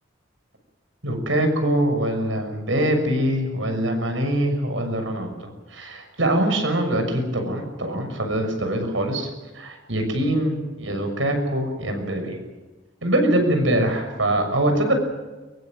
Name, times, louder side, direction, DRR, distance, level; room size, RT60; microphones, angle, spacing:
voice 1, 1.0-9.3 9.5-12.4 13.0-14.9, right 1 dB, 80° right, 5 dB, 6.7 m, -23 dB
24.0 x 23.0 x 7.7 m, 1.2 s
head